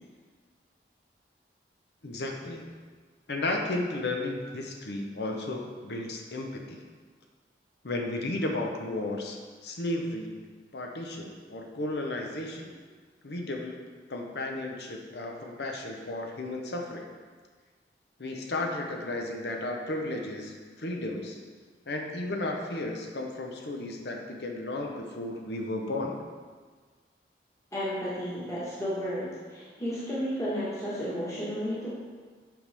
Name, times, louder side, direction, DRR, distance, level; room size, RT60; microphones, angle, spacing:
voice 1, 2.0-2.6 3.3-6.8 7.8-10.4 10.7-12.7 13.2-13.8 14.1-17.1 18.2-21.4 21.9-26.2, left 2 dB, 70° left, 2 dB, 0.8 m, -34 dB
voice 2, 27.7-31.9, equal, 15° left, -9 dB, 1.4 m, -32 dB
7.7 x 5.4 x 3.4 m, 1.5 s
head